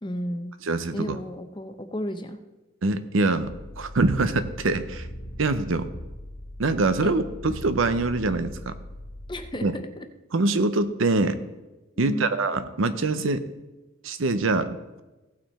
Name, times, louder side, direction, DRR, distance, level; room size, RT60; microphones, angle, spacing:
voice 1, 0.0-0.6 0.9-2.4 7.0-7.2 9.3-10.0 12.0-12.3, equal, 20° left, 8 dB, 0.7 m, -33 dB
voice 2, 0.6-1.2 2.8-3.5 3.8-5.1 5.4-5.9 6.6-8.7 9.6-9.7 10.3-11.4 12.0-13.4 14.0-15.0, right 3 dB, 70° right, 12 dB, 0.7 m, -24 dB
sound 1, 3.4-9.4, equal, 60° left, 1.4 m, -40 dB
16.5 x 6.0 x 4.2 m, 1.1 s
head